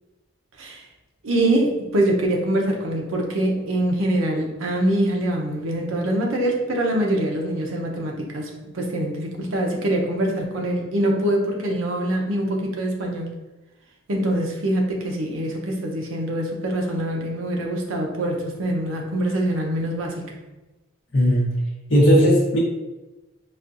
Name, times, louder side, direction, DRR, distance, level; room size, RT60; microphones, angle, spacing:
voice 1, 1.2-13.3 14.1-20.2, right 1 dB, 85° right, 0 dB, 0.7 m, -24 dB
voice 2, 21.1-21.5 21.9-22.6, equal, 65° left, -5 dB, 0.9 m, -16 dB
4.2 x 2.3 x 2.5 m, 1.1 s
head